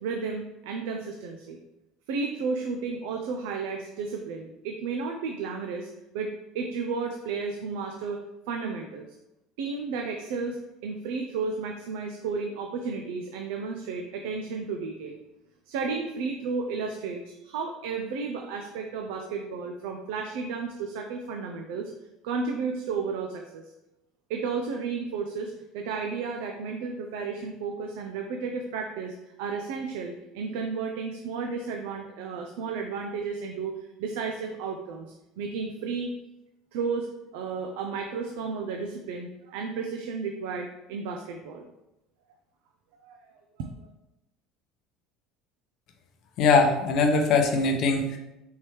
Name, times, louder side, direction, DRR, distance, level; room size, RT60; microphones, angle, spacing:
voice 1, 0.0-1.6 2.1-5.9 6.1-9.1 9.6-15.2 15.7-21.9 22.2-23.6 24.3-33.7 34.0-35.1 35.4-36.1 36.7-41.7 43.0-43.2 43.6-43.7, right 4 dB, 85° right, 3 dB, 0.4 m, -33 dB
voice 2, 46.4-48.2, left 4 dB, 50° left, 4 dB, 0.6 m, -21 dB
4.5 x 3.4 x 3.1 m, 0.93 s
cardioid pair, 150°, 0 cm